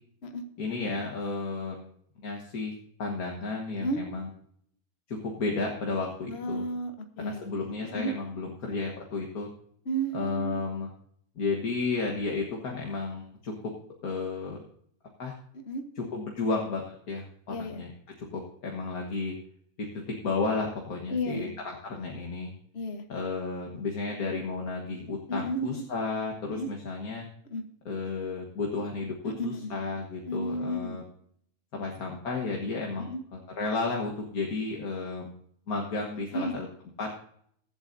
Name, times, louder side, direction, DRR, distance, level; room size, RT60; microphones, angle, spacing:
voice 1, 0.6-1.9 2.2-2.7 3.0-4.3 5.1-6.7 7.2-9.5 10.1-10.9 11.4-13.5 14.0-14.6 15.2-15.3 16.0-17.9 18.2-19.3 19.8-22.5 23.1-27.3 27.9-31.0 31.7-35.3 35.7-36.7 37.0-37.1, left 3 dB, 90° left, 0 dB, 1.9 m, -33 dB
voice 2, 6.3-7.5 7.8-8.1 9.9-10.6 15.5-15.8 17.5-17.8 21.1-21.5 22.7-23.0 25.3-25.8 26.5-26.7 27.5-27.6 29.2-29.7 30.3-31.0 33.0-33.2 36.3-36.6, right 1 dB, 50° left, 6 dB, 1.5 m, -33 dB
22.5 x 8.0 x 2.7 m, 0.68 s
omnidirectional pair, 1.5 m